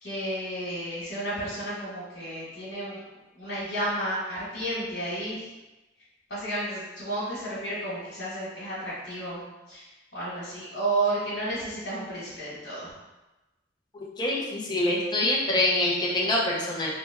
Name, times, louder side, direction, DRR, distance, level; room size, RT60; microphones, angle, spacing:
voice 1, 0.0-3.0 3.3-5.5 6.3-9.4 9.7-9.9 10.1-12.9, right 1 dB, 70° left, -8 dB, 1.4 m, -32 dB
voice 2, 14.2-16.9, left 1 dB, 25° left, -3 dB, 0.5 m, -25 dB
3.3 x 2.1 x 3.4 m, 1.1 s
head